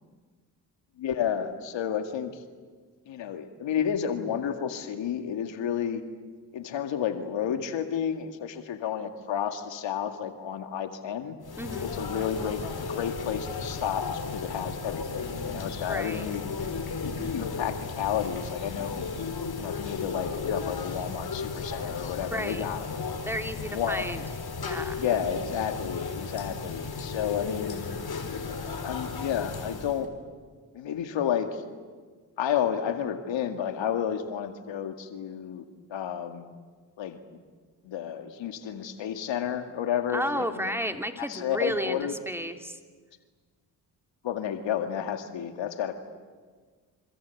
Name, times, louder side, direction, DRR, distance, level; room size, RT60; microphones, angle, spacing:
voice 1, 1.0-2.3 3.1-6.0 6.5-11.4 11.8-16.6 17.3-19.1 19.6-22.9 23.7-24.1 25.0-27.9 28.8-30.1 30.7-31.6 32.4-35.6 35.9-36.4 37.0-37.2 37.8-40.7 41.2-42.2 44.2-45.9, left 8 dB, 80° left, 7 dB, 2.1 m, -31 dB
sound 1, 11.4-30.1, left 4 dB, 55° left, 3.9 m, -35 dB
voice 2, 11.6-12.0 15.8-16.3 21.8-21.9 22.3-22.7 23.2-24.2 24.6-25.0 40.1-42.8, equal, 5° right, 6 dB, 3.0 m, -33 dB
26.5 x 26.5 x 8.4 m, 1.5 s
supercardioid pair, 45°, 44 cm